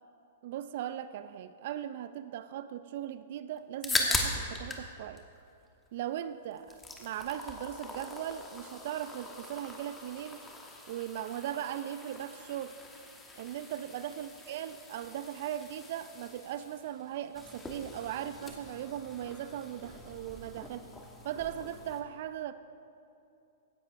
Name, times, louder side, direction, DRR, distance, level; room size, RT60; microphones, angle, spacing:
voice 1, 0.4-5.2 5.9-10.5 10.9-12.8 13.4-20.9 21.2-22.6, right 11 dB, 60° right, 13 dB, 0.3 m, -38 dB
sound 1, 3.6-4.9 5.2-6.2 6.5-22.0, left 2 dB, 10° left, 1.1 m, -40 dB
16.0 x 10.5 x 2.5 m, 2.7 s
hypercardioid pair, 125°, 0 cm